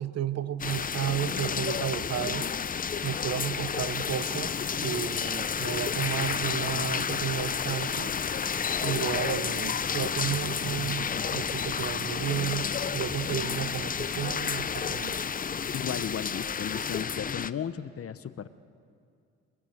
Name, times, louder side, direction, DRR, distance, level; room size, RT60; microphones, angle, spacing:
voice 1, 0.0-2.5 3.0-4.5 4.8-8.1 8.8-15.1, right 10 dB, 55° right, 14 dB, 0.9 m, -33 dB
sound 1, 0.6-17.5, left 6 dB, 30° left, 0.6 m, -31 dB
Piano, 6.0-13.0 13.2-13.3, left 5 dB, 65° left, 2.8 m, -51 dB
voice 2, 15.7-18.5, left 8 dB, 50° left, 13 dB, 1.0 m, -35 dB
24.0 x 21.0 x 7.9 m, 2.3 s
cardioid pair, 90°, 30 cm